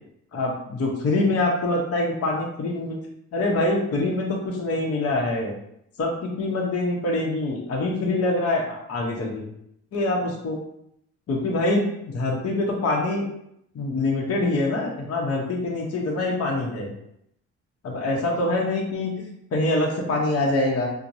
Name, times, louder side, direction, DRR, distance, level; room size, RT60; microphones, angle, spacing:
voice 1, 0.3-3.0 3.3-5.5 6.0-9.4 9.9-10.6 11.3-13.3 13.7-16.9 17.8-20.9, left 2 dB, 50° left, -1 dB, 0.9 m, -25 dB
4.4 x 2.2 x 2.6 m, 0.75 s
cardioid pair, 90°, 30 cm